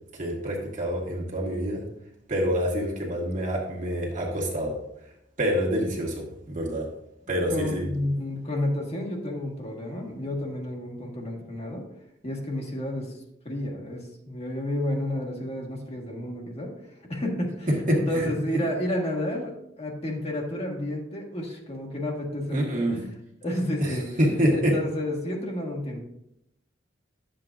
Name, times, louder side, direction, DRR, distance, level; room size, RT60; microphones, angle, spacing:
voice 1, 0.2-1.8 2.3-4.7 5.4-6.8 7.3-7.9 17.9-18.3 22.5-23.0 23.8-24.7, equal, 45° right, -2 dB, 1.8 m, -26 dB
voice 2, 7.3-11.8 12.2-23.1 23.4-24.1 24.5-26.0, left 1 dB, 35° left, 0 dB, 1.5 m, -31 dB
11.5 x 7.6 x 2.5 m, 0.82 s
head